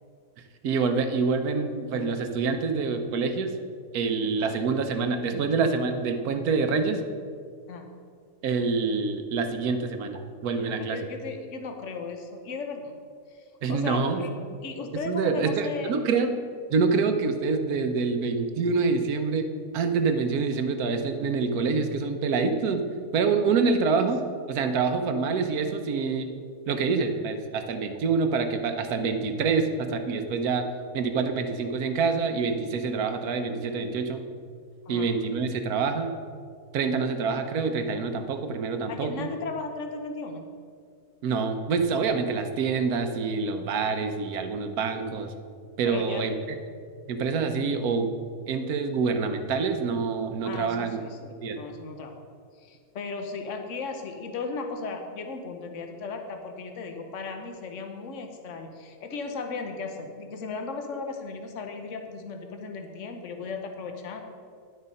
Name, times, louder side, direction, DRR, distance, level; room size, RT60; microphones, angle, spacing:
voice 1, 0.6-3.5 3.9-7.0 8.4-11.0 13.6-14.4 15.1-16.3 16.7-19.5 19.7-22.8 23.1-24.2 24.5-26.3 26.7-30.7 30.9-34.2 34.9-36.1 36.7-39.3 41.2-45.3 45.8-46.3 47.1-48.1 48.5-51.0 51.4-51.6, right 4 dB, 75° right, 7 dB, 1.3 m, -26 dB
voice 2, 10.7-12.9 13.3-14.3 14.6-15.9 23.9-24.1 34.9-35.1 38.9-40.4 45.8-46.3 50.4-52.2 52.6-64.2, left 4 dB, 55° left, 5 dB, 1.2 m, -36 dB
10.5 x 6.3 x 5.3 m, 2.1 s
omnidirectional pair, 1.7 m